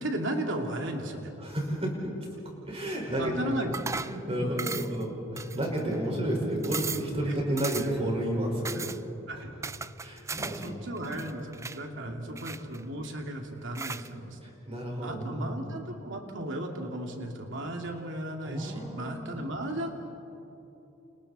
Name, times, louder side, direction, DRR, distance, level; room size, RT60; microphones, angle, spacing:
voice 1, 0.0-1.3 3.2-3.7 8.7-8.8 9.3-9.7 10.6-14.4 15.0-19.9, right 1 dB, 65° right, 2 dB, 2.8 m, -35 dB
voice 2, 1.4-2.2 2.6-3.3 4.1-8.7 9.3-9.4 10.0-10.7 11.7-12.2 14.4-15.4 18.4-19.5, right 1 dB, 30° right, -1 dB, 5.5 m, -31 dB
sound 1, 3.7-4.2 4.6-5.0 5.4-6.0 6.3-6.4 6.6-7.1 7.6-8.0 8.6-9.0 9.6-10.7 11.0-11.8 12.4-13.1 13.7-14.1, right 4 dB, 15° right, 0.4 m, -37 dB
29.5 x 29.5 x 4.4 m, 3.0 s
head